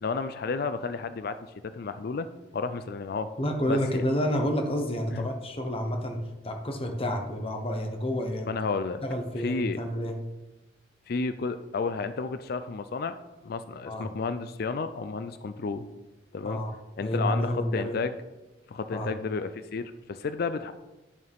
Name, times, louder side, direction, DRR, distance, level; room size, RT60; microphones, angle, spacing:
voice 1, 0.0-1.4 1.7-2.3 2.5-3.3 3.7-4.0 5.1-5.2 8.5-9.0 9.4-9.8 11.1-13.1 13.4-15.9 16.3-16.6 17.0-18.1 18.7-20.7, left 4 dB, 55° left, 11 dB, 0.4 m, -31 dB
voice 2, 3.4-6.2 6.4-8.5 9.0-10.1 13.9-14.1 16.4-16.7 17.0-18.0 18.9-19.1, equal, 30° left, 4 dB, 1.1 m, -29 dB
11.0 x 6.5 x 3.5 m, 1.0 s
head